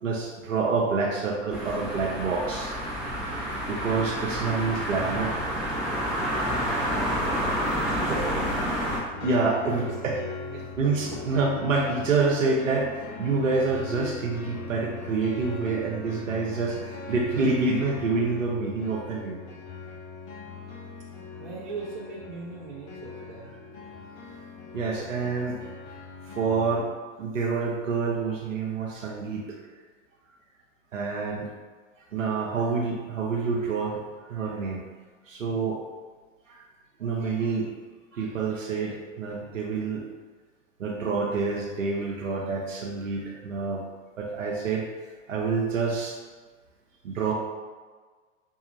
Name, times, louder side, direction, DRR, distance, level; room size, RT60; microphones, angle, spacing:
voice 1, 0.0-2.7 3.7-5.3 8.0-8.2 9.2-10.2 10.8-19.4 24.7-25.6 26.3-26.9 27.2-29.6 30.9-31.5 32.1-34.8 35.3-35.8 36.5-36.6 37.0-37.7 38.1-40.0 40.8-43.8 44.2-44.9 45.3-46.2 47.0-47.3, right 4 dB, 75° right, -2 dB, 0.7 m, -27 dB
sound 1, 1.5-9.0, equal, ahead, 0.8 m, -29 dB
voice 2, 8.2-9.0 9.8-9.9 10.4-10.8 11.1-11.2 21.4-23.5, right 4 dB, 35° right, -5 dB, 0.7 m, -39 dB
sound 2, 9.1-26.8, left 3 dB, 35° left, 0.7 m, -40 dB
5.3 x 2.3 x 2.9 m, 1.4 s
figure-of-eight pair, 100°, 39 cm